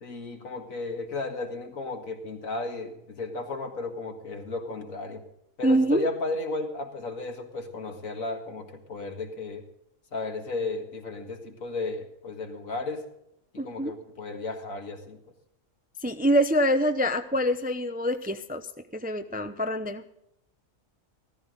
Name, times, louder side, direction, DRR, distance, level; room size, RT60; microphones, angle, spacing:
voice 1, 0.0-5.2 5.6-9.6 10.1-13.0 13.5-15.2, left 3 dB, 85° left, 4 dB, 2.2 m, -34 dB
voice 2, 5.6-6.1 13.6-13.9 16.0-18.7 18.9-20.0, equal, 10° right, 9 dB, 0.4 m, -25 dB
14.5 x 14.5 x 3.9 m, 0.82 s
omnidirectional pair, 1.4 m